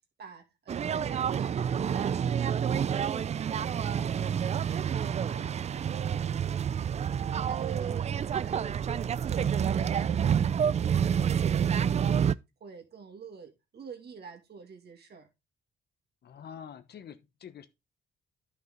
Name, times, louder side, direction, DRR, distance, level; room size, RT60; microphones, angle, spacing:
voice 1, 0.2-3.2 3.5-7.2 7.5-8.9 9.2-12.3 12.6-15.3, right 6 dB, 55° right, 2.5 m, -49 dB
sound 1, 0.7-12.3, right 8 dB, 35° right, 0.4 m, -28 dB
voice 2, 16.2-17.7, left 8 dB, 55° left, 1.1 m, -46 dB
10.5 x 5.8 x 3.8 m
cardioid pair, 90°, 20 cm